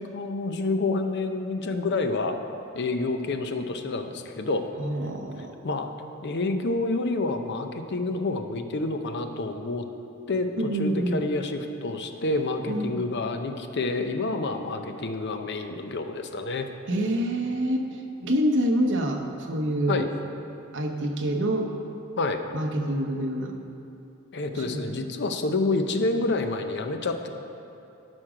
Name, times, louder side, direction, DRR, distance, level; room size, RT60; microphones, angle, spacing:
voice 1, 0.0-2.4 2.7-4.7 5.6-5.9 6.2-9.8 10.3-16.7 19.9-20.1 22.2-22.4 24.3-27.3, left 2 dB, 55° left, 7 dB, 0.7 m, -28 dB
voice 2, 4.8-5.5 10.6-11.2 12.7-13.1 16.9-17.8 18.2-20.0 20.7-21.7 22.5-23.5 24.5-24.8, right 1 dB, 60° right, 2 dB, 1.0 m, -26 dB
12.0 x 6.2 x 5.0 m, 2.7 s
head